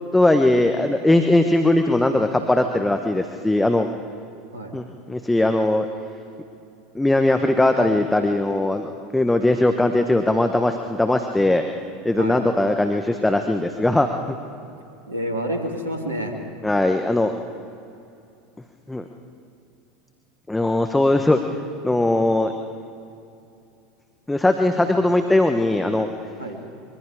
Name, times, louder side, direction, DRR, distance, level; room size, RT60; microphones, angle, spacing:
voice 1, 0.1-3.9 4.7-5.9 6.9-11.6 12.0-14.3 16.6-17.3 18.9-19.0 20.5-21.4 21.8-22.5 24.3-26.1, left 1 dB, 10° left, 6 dB, 1.2 m, -19 dB
voice 2, 15.1-16.4 24.8-24.9 26.4-26.6, right 1 dB, 85° right, 3 dB, 2.4 m, -28 dB
24.5 x 23.0 x 5.0 m, 2.6 s
figure-of-eight pair, 80°, 0 cm